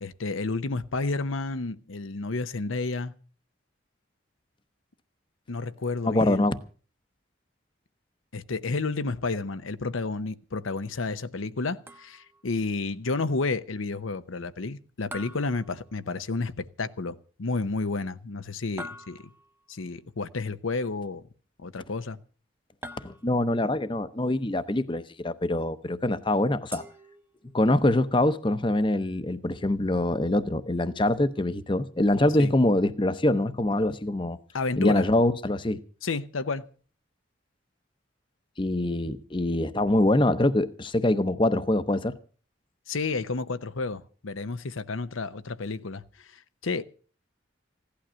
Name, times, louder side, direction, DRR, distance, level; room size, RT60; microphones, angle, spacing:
voice 1, 0.0-3.1 5.5-6.4 8.3-19.3 19.7-21.2 21.6-22.2 32.4-32.5 34.5-35.1 36.0-36.7 42.9-46.8, left 3 dB, 85° left, 0.8 m, -31 dB
voice 2, 6.0-6.6 23.0-26.8 27.5-34.4 34.8-35.8 38.6-42.1, left 1 dB, 25° left, 0.7 m, -24 dB
sound 1, 11.9-12.5 15.1-16.4 18.8-19.7 22.8-23.6 26.7-27.7, equal, 10° right, 0.8 m, -44 dB
16.0 x 11.5 x 6.2 m
head